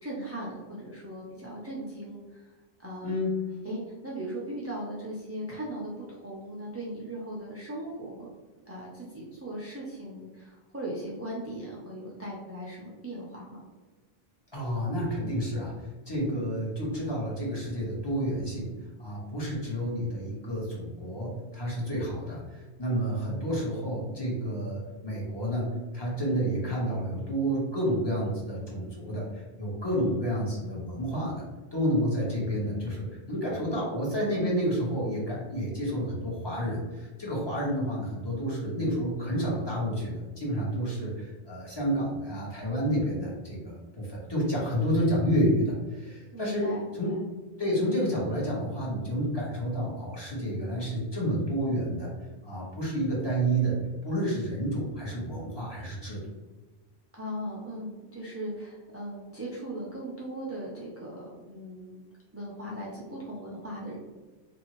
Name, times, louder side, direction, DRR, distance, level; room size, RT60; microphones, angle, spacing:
voice 1, 0.0-2.5 2.8-3.2 3.6-8.3 8.7-13.6 30.0-30.3 46.3-47.2 57.1-62.0 62.3-64.0, right 1 dB, 25° right, -6 dB, 0.3 m, -38 dB
voice 2, 3.0-3.3 14.5-18.7 19.0-31.4 31.7-46.7 47.0-47.1 47.6-52.1 52.4-56.2, equal, 25° left, -5 dB, 0.7 m, -30 dB
2.6 x 2.6 x 2.9 m, 1.2 s
omnidirectional pair, 1.1 m